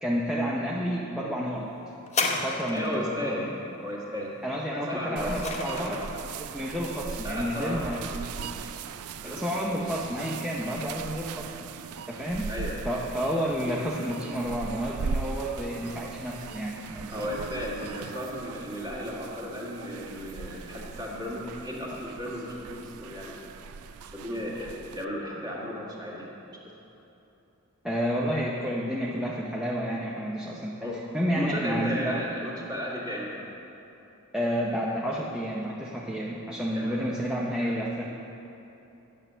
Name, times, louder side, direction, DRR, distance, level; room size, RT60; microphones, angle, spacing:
voice 1, 0.0-1.7 2.4-3.5 4.4-6.0 6.4-8.4 9.2-11.7 12.1-12.6 12.8-17.2 27.8-30.9 31.1-32.2 34.3-38.1, equal, 5° right, -4 dB, 0.7 m, -30 dB
sound 1, 2.1-3.1 4.8-6.2 7.0-7.1, left 3 dB, 30° left, 0.9 m, -31 dB
voice 2, 2.7-3.5 3.8-5.3 5.7-6.1 7.2-7.9 8.3-8.5 9.2-9.4 12.5-12.8 17.1-23.4 24.1-26.3 30.8-31.0 31.4-33.5 36.7-37.0 37.6-37.7, left 1 dB, 20° right, -5 dB, 1.9 m, -34 dB
sound 2, 5.2-25.0, right 5 dB, 80° right, 0.4 m, -39 dB
9.5 x 7.7 x 6.8 m, 2.9 s
head